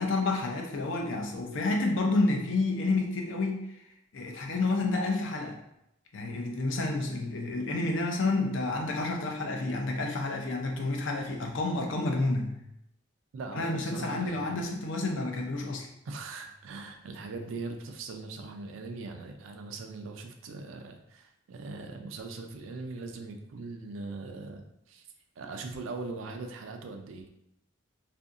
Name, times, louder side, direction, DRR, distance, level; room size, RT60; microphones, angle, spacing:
voice 1, 0.0-3.8 4.1-5.6 6.1-12.6 13.5-15.9, left 2 dB, 70° left, 1 dB, 0.5 m, -29 dB
voice 2, 13.3-14.5 16.1-25.0 25.4-27.3, right 3 dB, 80° right, 5 dB, 0.4 m, -40 dB
2.7 x 2.5 x 2.4 m, 0.81 s
head